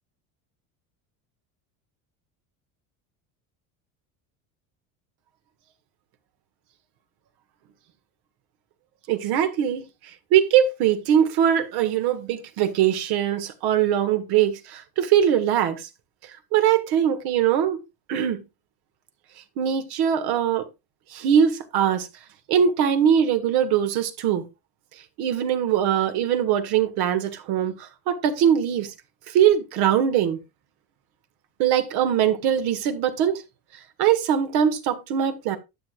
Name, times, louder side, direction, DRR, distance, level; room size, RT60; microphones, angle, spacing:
voice 1, 9.1-9.8 10.3-15.8 16.5-17.8 18.1-18.4 19.6-20.6 21.1-22.1 22.5-24.4 25.2-28.9 29.3-30.4 31.6-33.4 34.0-35.6, right 9 dB, 70° right, 1.7 m, -21 dB
11.0 x 7.7 x 2.4 m
supercardioid pair, 115°, 40 cm